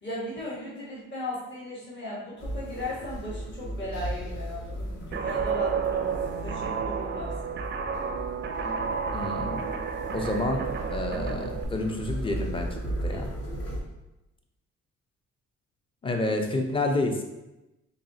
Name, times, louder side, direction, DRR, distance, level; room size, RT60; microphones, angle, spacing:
voice 1, 0.0-7.6 13.1-13.2, left 1 dB, 35° left, -5 dB, 1.2 m, -37 dB
sound 1, 2.4-13.8, right 1 dB, 55° left, 0.9 m, -36 dB
sound 2, 3.9-7.6, right 1 dB, 75° left, 1.2 m, -44 dB
Guitar, 5.1-11.6, right 6 dB, 40° right, 0.4 m, -31 dB
voice 2, 9.1-9.6 10.1-10.7 10.9-13.3 16.0-17.2, left 2 dB, 15° left, 4 dB, 0.5 m, -29 dB
4.0 x 3.1 x 2.7 m, 0.97 s
cardioid pair, 90°, 30 cm